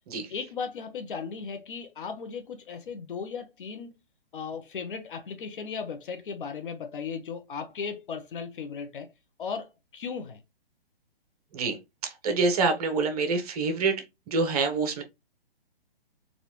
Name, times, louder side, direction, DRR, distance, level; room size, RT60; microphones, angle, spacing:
voice 1, 0.3-3.9 4.3-9.1 9.4-10.4, left 6 dB, 55° left, 0.7 m, -36 dB
voice 2, 12.2-14.0 14.3-15.0, right 4 dB, 40° right, 0.8 m, -26 dB
4.1 x 2.4 x 2.9 m
figure-of-eight pair, 130°, 31 cm